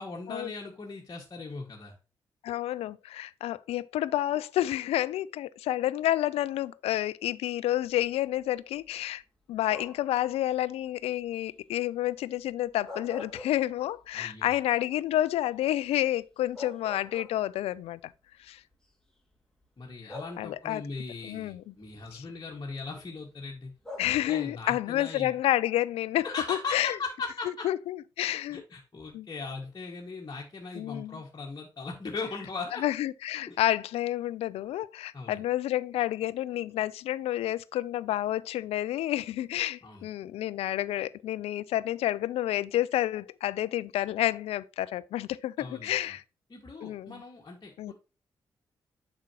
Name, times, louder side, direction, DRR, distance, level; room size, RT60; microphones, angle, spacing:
voice 1, 0.0-1.9 14.1-14.5 19.8-23.7 24.2-25.3 26.2-27.7 28.2-32.8 33.5-33.6 35.1-35.4 39.8-40.1 45.6-46.2 46.5-47.9, left 4 dB, 40° left, 1.7 m, -39 dB
voice 2, 2.4-9.2 9.5-18.1 18.4-18.6 20.0-20.8 21.2-21.7 22.1-22.2 24.0-27.0 27.6-28.6 29.1-29.3 30.8-31.2 32.8-46.2 46.8-47.2 47.8-47.9, left 13 dB, 80° left, 0.4 m, -30 dB
sound 1, 9.7-10.2 12.6-14.0 14.4-14.5 16.1-16.2 16.5-17.7 18.7-18.8 20.1-20.8 23.8-24.7, left 2 dB, 5° left, 3.3 m, -44 dB
7.4 x 5.9 x 2.8 m
supercardioid pair, 45°, 10 cm